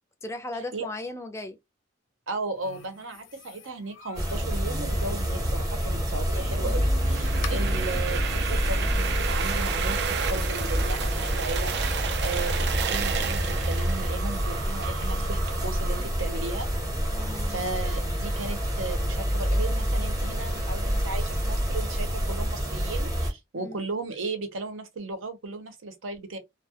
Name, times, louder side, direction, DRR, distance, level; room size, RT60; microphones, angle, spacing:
voice 1, 0.2-1.6 6.5-6.8 17.1-17.6 23.6-23.8, left 2 dB, 15° left, 0.4 m, -37 dB
voice 2, 2.3-16.7 17.4-26.4, right 3 dB, 85° right, 0.7 m, -36 dB
sound 1, 2.6-22.2, left 5 dB, 80° left, 0.6 m, -48 dB
sound 2, 4.2-23.3, equal, 20° right, 0.7 m, -27 dB
sound 3, 6.3-16.1, right 7 dB, 60° right, 0.3 m, -33 dB
2.2 x 2.0 x 2.7 m
head